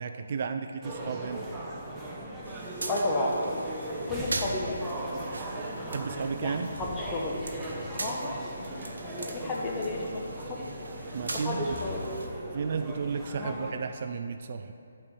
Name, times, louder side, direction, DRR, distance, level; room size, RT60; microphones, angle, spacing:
voice 1, 0.0-1.6 5.9-6.7 11.1-11.8 12.5-14.7, right 5 dB, 45° right, 7 dB, 0.3 m, -33 dB
sound 1, 0.8-13.7, right 1 dB, 10° right, 0.9 m, -38 dB
sound 2, 2.4-12.3, right 2 dB, 90° right, 0.9 m, -41 dB
voice 2, 2.9-3.4 3.9-4.8 5.2-5.3 6.4-7.4 7.9-8.5 9.2-10.6 11.3-12.0 13.4-13.6, left 2 dB, 15° left, -3 dB, 1.0 m, -32 dB
8.5 x 4.3 x 6.9 m, 2.4 s
hypercardioid pair, 160°, 0 cm